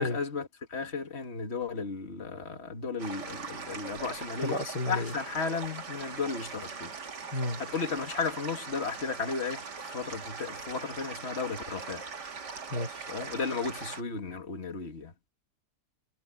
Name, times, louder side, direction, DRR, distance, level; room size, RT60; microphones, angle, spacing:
voice 1, 0.0-4.6 4.9-6.9 7.6-12.1 13.1-15.1, left 4 dB, 40° left, 2.5 m, -34 dB
sound 1, 3.0-14.0, right 5 dB, 90° right, 2.8 m, -41 dB
voice 2, 4.4-5.1 7.3-7.6 12.7-13.0, left 2 dB, 85° left, 3.2 m, -32 dB
omnidirectional pair, 1.7 m